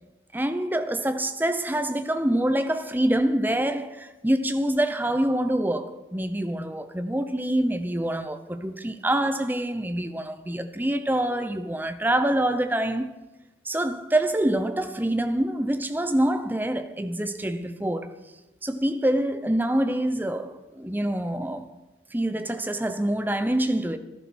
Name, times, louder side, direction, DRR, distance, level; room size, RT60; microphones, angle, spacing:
voice 1, 0.3-13.1 13.6-18.2 18.6-21.7 22.1-24.0, right 1 dB, 10° right, 0.8 m, -26 dB
14.5 x 12.0 x 6.3 m
head